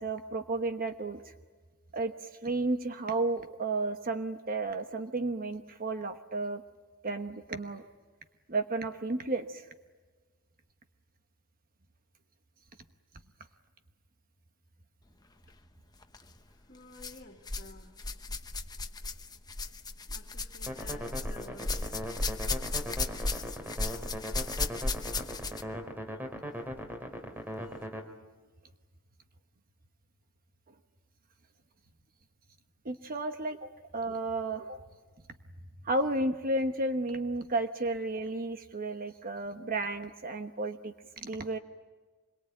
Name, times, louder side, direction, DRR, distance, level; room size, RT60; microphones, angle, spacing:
voice 1, 0.0-1.3 1.9-6.6 7.0-7.8 8.5-9.7 32.8-34.8 35.8-41.6, right 2 dB, 40° right, 7 dB, 1.1 m, -33 dB
sound 1, 16.0-16.2 17.0-17.7 18.0-25.8 26.7-26.8 27.6-27.7, left 3 dB, 20° left, 1.1 m, -35 dB
voice 2, 16.5-18.0 20.1-21.7, left 2 dB, 40° left, 1 dB, 2.7 m, -53 dB
sound 2, 20.7-28.0, equal, 10° right, 2.9 m, -39 dB
26.5 x 22.0 x 9.0 m, 1.4 s
head